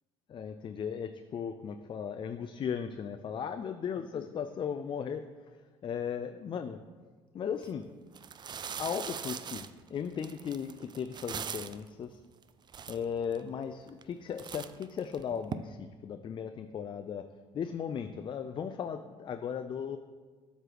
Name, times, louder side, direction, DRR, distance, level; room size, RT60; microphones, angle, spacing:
voice 1, 0.3-5.2 5.8-6.8 7.3-7.9 8.8-12.2 12.9-17.2 17.5-20.0, left 7 dB, 35° left, 8 dB, 0.4 m, -36 dB
sound 1, 7.5-7.7 8.1-11.9 12.4-12.5 12.7-13.4 13.9-14.1 14.4-15.5, right 7 dB, 35° right, 0.4 m, -41 dB
7.5 x 3.3 x 6.1 m, 1.4 s
hypercardioid pair, 60°, 14 cm